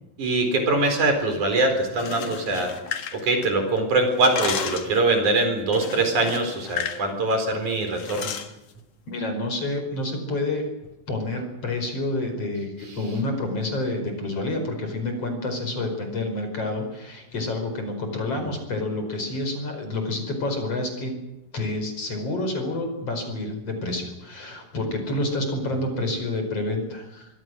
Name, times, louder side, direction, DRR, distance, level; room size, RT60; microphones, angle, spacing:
voice 1, 0.2-2.7 3.1-8.3 18.4-18.5, right 2 dB, 55° right, 6 dB, 5.7 m, -23 dB
sound 1, 1.9-3.8 4.1-5.0 5.7-7.1 7.3-7.5 8.0-8.5, left 8 dB, 65° left, 3.2 m, -32 dB
voice 2, 9.1-10.7 11.1-21.1 21.5-27.3, left 2 dB, 40° left, 5 dB, 5.8 m, -28 dB
25.0 x 24.0 x 6.4 m, 0.89 s
omnidirectional pair, 4.1 m